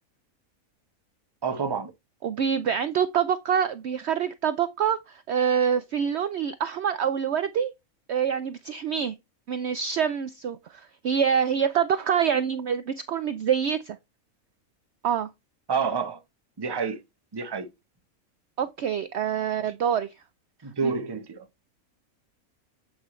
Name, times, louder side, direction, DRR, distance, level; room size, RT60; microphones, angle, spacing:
voice 1, 1.4-1.9 15.7-16.2 16.6-17.0 17.3-17.7 20.6-21.4, right 5 dB, 20° right, 0.7 m, -28 dB
voice 2, 2.2-7.7 8.1-9.1 9.5-14.0 15.0-15.3 18.6-20.1 20.8-20.9, right 8 dB, 65° right, 0.7 m, -26 dB
8.1 x 4.7 x 3.1 m
omnidirectional pair, 1.5 m